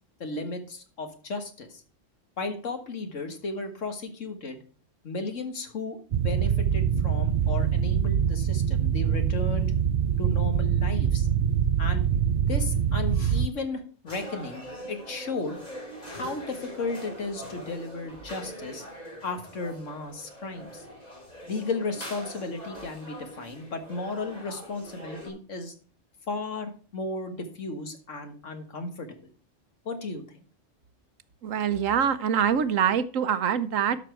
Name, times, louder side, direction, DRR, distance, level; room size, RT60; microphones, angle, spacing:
voice 1, 0.2-1.8 2.4-4.6 5.0-9.7 10.2-11.3 11.8-12.1 12.5-15.6 16.0-18.9 19.2-20.9 21.5-25.7 26.3-29.1 29.9-30.4, left 3 dB, 70° left, 6 dB, 1.9 m, -34 dB
sound 1, 6.1-13.5, right 8 dB, 55° right, 0.6 m, -24 dB
sound 2, 14.1-25.3, equal, 30° left, 3.9 m, -42 dB
voice 2, 31.4-34.0, right 8 dB, 85° right, 13 dB, 1.2 m, -24 dB
12.0 x 6.0 x 4.5 m, 0.39 s
omnidirectional pair, 1.3 m